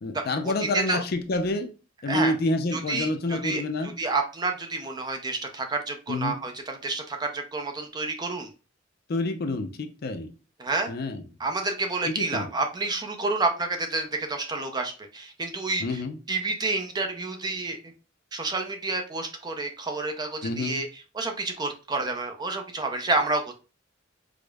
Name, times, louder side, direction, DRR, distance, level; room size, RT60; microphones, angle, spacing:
voice 1, 0.0-1.7 2.0-3.9 6.1-6.3 9.1-10.3 10.9-11.2 12.1-12.5 15.8-16.2 20.4-20.8, left 2 dB, 50° left, 7 dB, 0.4 m, -28 dB
voice 2, 2.7-3.6 4.0-8.5 10.6-10.9 11.4-16.0 16.3-17.8 18.3-20.9 21.1-23.6, right 3 dB, 20° right, 4 dB, 0.4 m, -29 dB
4.8 x 2.0 x 2.2 m, 0.33 s
head